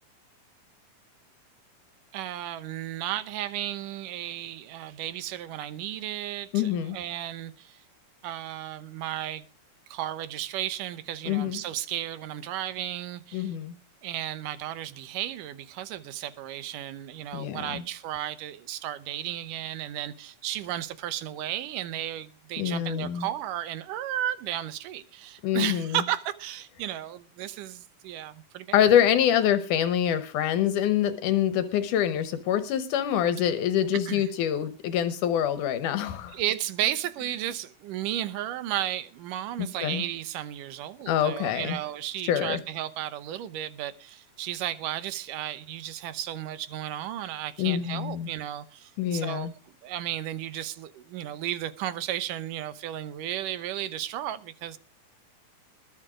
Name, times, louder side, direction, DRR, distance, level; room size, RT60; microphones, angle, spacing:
voice 1, 2.1-7.8 8.2-9.5 9.9-13.6 14.0-28.8 34.1-34.2 36.3-49.5 49.8-54.8, right 12 dB, 90° right, 2.6 m, -34 dB
voice 2, 6.5-7.0 11.3-11.6 13.3-13.8 17.3-17.8 22.6-23.3 25.4-26.0 28.7-36.4 39.8-40.0 41.1-41.8 42.2-42.6 47.6-48.3 49.0-49.5, left 10 dB, 80° left, 2.4 m, -25 dB
21.0 x 7.3 x 5.0 m
omnidirectional pair, 3.6 m